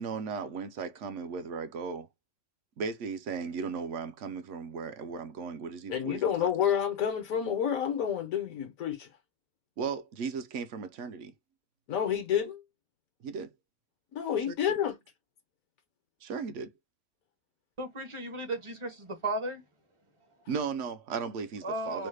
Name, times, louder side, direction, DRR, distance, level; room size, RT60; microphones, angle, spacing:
voice 1, 0.0-2.1 2.8-6.5 9.8-11.3 13.2-13.5 14.5-14.6 16.2-16.7 20.5-22.1, right 5 dB, 65° right, 0.8 m, -36 dB
voice 2, 5.9-9.1 11.9-12.6 14.1-15.0, left 9 dB, 75° left, 1.1 m, -29 dB
voice 3, 17.8-19.6 21.6-22.1, right 2 dB, 35° right, 0.5 m, -35 dB
3.1 x 2.1 x 3.1 m
omnidirectional pair, 1.5 m